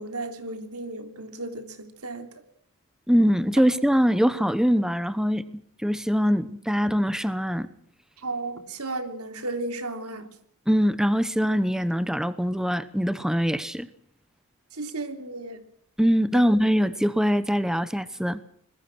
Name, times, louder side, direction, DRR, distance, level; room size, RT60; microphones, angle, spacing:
voice 1, 0.0-2.3 8.2-10.3 14.7-15.6 16.3-16.4, right 2 dB, 80° right, 8 dB, 3.4 m, -34 dB
voice 2, 3.1-5.4 5.8-7.7 10.7-13.9 16.0-18.4, equal, 5° right, 14 dB, 0.9 m, -23 dB
26.5 x 20.5 x 6.2 m, 0.62 s
head